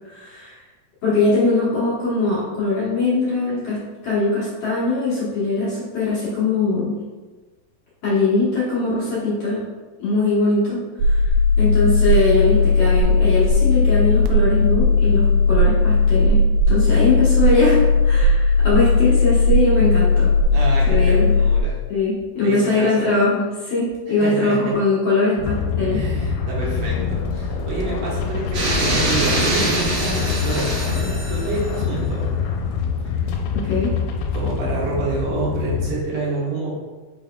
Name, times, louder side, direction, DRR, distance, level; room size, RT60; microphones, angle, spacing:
voice 1, 0.1-0.6 1.0-7.0 8.0-9.6 10.0-11.3 11.6-16.4 16.7-20.3 20.8-21.3 21.9-26.0 33.5-33.9, left 3 dB, 60° left, -9 dB, 1.6 m, -21 dB
sound 1, 11.0-21.6, left 3 dB, 85° right, 2.5 m, -16 dB
voice 2, 20.5-21.8 22.4-23.1 24.1-24.8 25.9-32.3 33.1-33.2 34.3-36.7, right 2 dB, 70° right, -5 dB, 2.2 m, -28 dB
sound 2, 25.4-36.0, left 5 dB, 85° left, 2.4 m, -25 dB
sound 3, 28.5-31.7, right 1 dB, 55° right, 2.1 m, -23 dB
5.6 x 4.1 x 2.3 m, 1.3 s
omnidirectional pair, 4.3 m